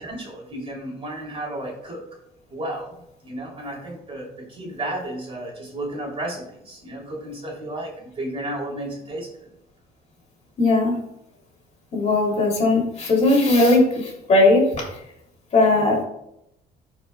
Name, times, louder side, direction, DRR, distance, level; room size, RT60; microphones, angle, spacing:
voice 1, 0.0-2.0 2.5-2.9 3.2-9.5 15.7-15.9, right 1 dB, 35° right, -2 dB, 2.8 m, -33 dB
voice 2, 10.6-10.9 11.9-14.8 15.5-16.0, left 2 dB, 40° left, -1 dB, 2.8 m, -18 dB
14.5 x 4.8 x 2.2 m, 0.80 s
cardioid pair, 110°, 17 cm